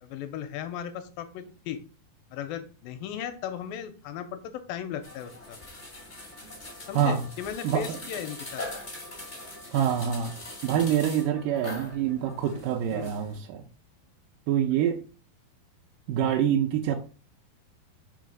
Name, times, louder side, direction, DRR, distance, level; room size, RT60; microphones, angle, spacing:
voice 1, 0.0-1.8 2.3-5.6 6.9-8.6 12.9-13.1, left 9 dB, 80° left, 9 dB, 2.3 m, -36 dB
sound 1, 5.0-13.4, left 2 dB, 45° left, 0.5 m, -42 dB
voice 2, 6.9-7.3 7.6-8.0 9.7-10.4 10.6-13.6 14.5-15.0 16.1-16.9, right 9 dB, 75° right, 1 dB, 2.0 m, -26 dB
5.5 x 3.3 x 5.2 m, 0.36 s
omnidirectional pair, 4.3 m